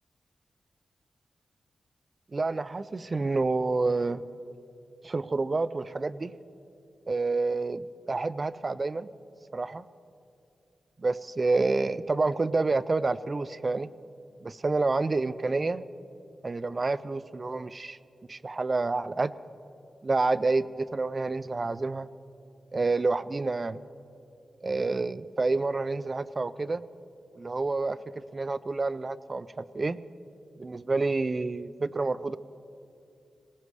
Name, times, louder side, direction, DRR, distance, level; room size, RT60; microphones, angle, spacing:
voice 1, 2.3-4.2 5.0-6.3 7.1-9.1 9.5-9.9 11.0-13.9 14.4-15.8 16.4-18.0 18.3-19.3 20.0-22.1 22.7-23.8 24.6-26.8 27.4-30.0 30.6-32.4, right 3 dB, 30° right, 16 dB, 0.4 m, -28 dB
19.0 x 18.5 x 3.2 m, 2.6 s
wide cardioid pair, 120°, 0 cm